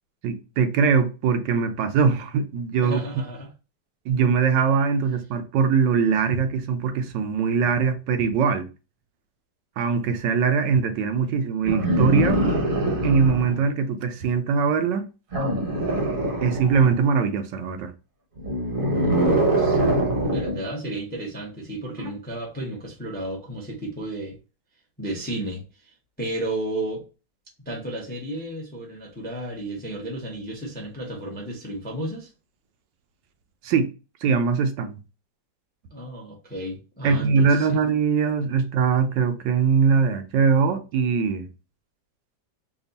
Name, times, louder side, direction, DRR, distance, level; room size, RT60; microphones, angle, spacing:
voice 1, 0.2-3.2 4.1-8.7 9.8-12.4 13.0-15.0 16.4-17.9 33.6-33.9 34.2-35.0 37.0-41.5, right 6 dB, 80° right, 1.3 m, -22 dB
voice 2, 2.8-3.5 18.9-19.8 20.3-24.4 25.0-27.0 27.7-32.3 35.9-37.8, right 1 dB, 10° left, 0.5 m, -33 dB
sound 1, 11.7-13.6 15.3-17.1 18.4-20.6 22.0-22.1, right 1 dB, 40° right, 0.8 m, -23 dB
3.4 x 2.3 x 3.9 m
omnidirectional pair, 1.9 m